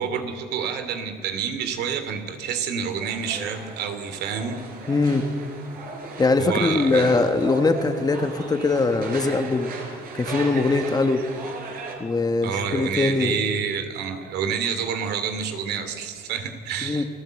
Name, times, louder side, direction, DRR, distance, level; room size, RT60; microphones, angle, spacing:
voice 1, 0.0-4.6 6.4-7.2 12.4-17.1, right 7 dB, 75° right, 8 dB, 2.7 m, -28 dB
sound 1, 3.0-11.9, right 4 dB, 60° right, 5.0 m, -37 dB
voice 2, 4.9-5.3 6.2-9.7 10.2-11.3 12.0-13.4 16.8-17.0, left 3 dB, 25° left, 7 dB, 1.8 m, -22 dB
29.0 x 16.0 x 7.9 m, 2.1 s
cardioid pair, 110°, 17 cm